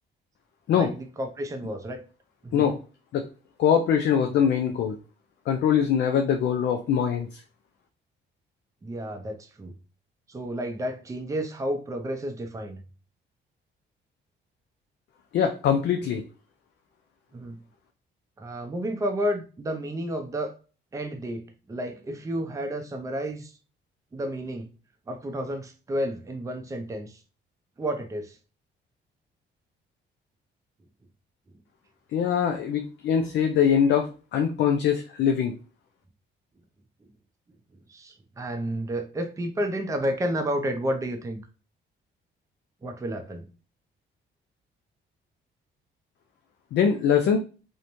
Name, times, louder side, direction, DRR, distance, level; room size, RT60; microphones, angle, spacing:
voice 1, 0.7-2.0 2.4-2.6 8.8-9.7 10.3-12.8 17.3-17.6 18.4-20.5 20.9-23.5 24.1-24.7 25.1-27.2 27.8-28.4 37.9-41.4 42.8-43.4, equal, 15° right, 6 dB, 0.5 m, -31 dB
voice 2, 3.6-5.0 5.5-7.4 15.3-16.2 32.1-35.5 46.7-47.4, left 8 dB, 65° left, 5 dB, 0.4 m, -23 dB
2.9 x 2.1 x 2.5 m, 0.35 s
cardioid pair, 90°, 20 cm